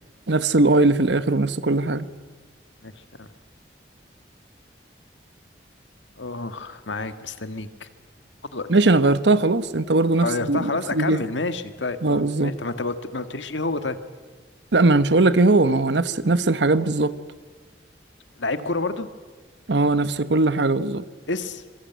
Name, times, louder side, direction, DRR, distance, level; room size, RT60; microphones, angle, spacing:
voice 1, 0.3-2.0 8.7-11.2 12.0-12.5 14.7-17.1 19.7-21.0, right 2 dB, 75° right, 1.0 m, -19 dB
voice 2, 6.2-7.9 8.5-8.7 10.2-14.0 18.4-19.1 21.3-21.6, left 3 dB, 90° left, 1.8 m, -29 dB
26.5 x 22.5 x 9.4 m
head